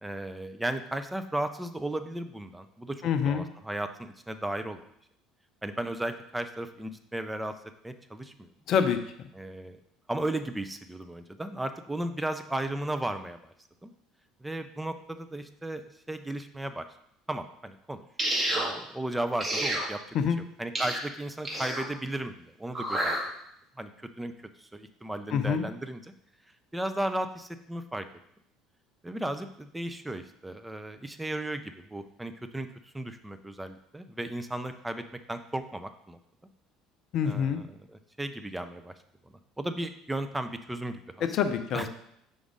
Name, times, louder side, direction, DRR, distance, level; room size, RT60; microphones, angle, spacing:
voice 1, 0.0-4.8 5.6-7.5 7.8-8.5 9.3-9.8 10.1-13.4 13.8-13.9 14.4-16.9 17.3-18.0 18.5-20.0 20.6-23.2 23.8-23.9 24.2-24.3 24.6-26.0 26.7-28.1 29.0-32.7 32.9-36.2 37.2-38.9 39.2-41.3 41.7-41.9, right 1 dB, 10° right, 8 dB, 0.5 m, -35 dB
voice 2, 3.0-3.5 8.7-9.3 20.1-20.4 25.3-25.7 37.1-37.6 41.3-41.9, left 7 dB, 50° left, 8 dB, 0.6 m, -26 dB
sound 1, 18.2-18.7 19.4-19.9 20.7-21.0 21.4-21.9 22.7-23.2, right 1 dB, 25° right, 1.5 m, -29 dB
5.1 x 4.0 x 4.9 m, 0.72 s
figure-of-eight pair, 60°, 0 cm